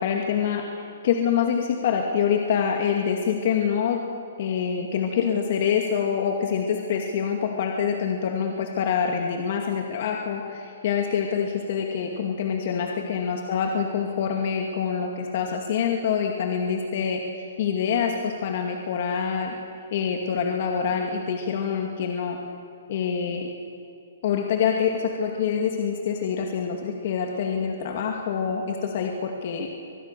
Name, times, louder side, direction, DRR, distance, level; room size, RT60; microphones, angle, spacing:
voice 1, 0.0-4.0 4.4-19.6 19.9-22.4 22.9-23.5 24.2-29.7, left 7 dB, 50° left, 2 dB, 2.3 m, -26 dB
25.0 x 20.0 x 6.8 m, 2.5 s
hypercardioid pair, 155°, 0 cm